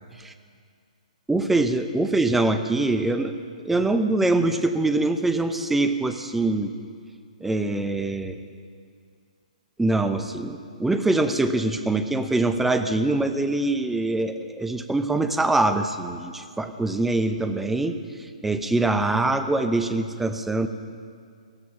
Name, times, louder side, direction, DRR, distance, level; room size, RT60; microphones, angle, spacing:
voice 1, 1.3-3.3 3.6-6.7 7.4-8.4 9.8-20.7, right 2 dB, 5° right, 8 dB, 0.8 m, -24 dB
16.5 x 15.0 x 5.8 m, 2.2 s
hypercardioid pair, 135°, 4 cm